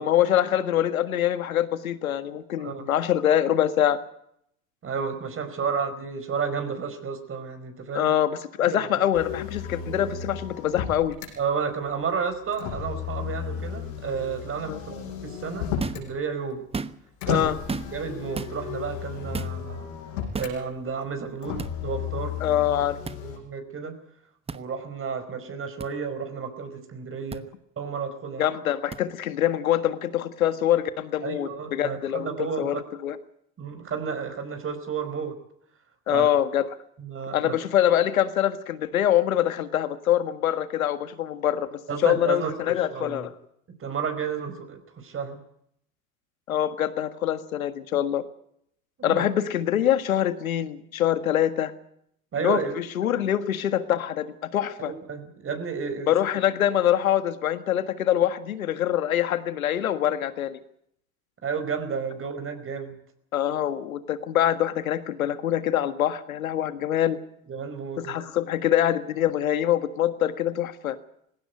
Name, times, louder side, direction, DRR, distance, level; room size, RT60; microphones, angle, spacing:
voice 1, 0.0-4.0 7.9-11.1 14.7-14.8 17.3-17.6 22.4-23.0 28.4-32.3 32.6-33.2 36.1-36.7 37.3-43.3 46.5-48.2 49.0-51.7 52.4-54.9 56.1-60.6 63.3-67.2 68.0-71.0, left 11 dB, 90° left, 12 dB, 1.7 m, -24 dB
voice 2, 2.6-2.9 4.8-8.1 8.7-8.9 11.4-15.7 15.9-16.6 17.3-17.5 17.9-19.9 20.4-22.3 23.2-24.0 24.5-27.4 27.8-28.5 31.2-32.9 33.6-35.3 36.1-36.3 37.0-37.5 41.9-42.5 42.9-43.3 43.8-45.4 49.0-49.2 52.3-52.7 54.8-56.1 61.4-62.9 67.5-68.2, right 6 dB, 30° right, 8 dB, 4.8 m, -31 dB
Motor vehicle (road), 9.1-11.3 12.5-16.1 17.2-20.6 21.4-23.4, left 8 dB, 70° left, 6.4 m, -34 dB
sound 1, 15.8-16.1 16.6-17.2 17.7-18.1 18.3-18.5 19.3-19.6 20.3-20.6 21.6-21.7 23.0-23.2 24.5-24.6 25.8-25.9 27.3-27.4 28.9-29.0, right 4 dB, 15° right, 1.0 m, -33 dB
19.5 x 16.5 x 9.3 m, 0.72 s
hypercardioid pair, 90°, 40 cm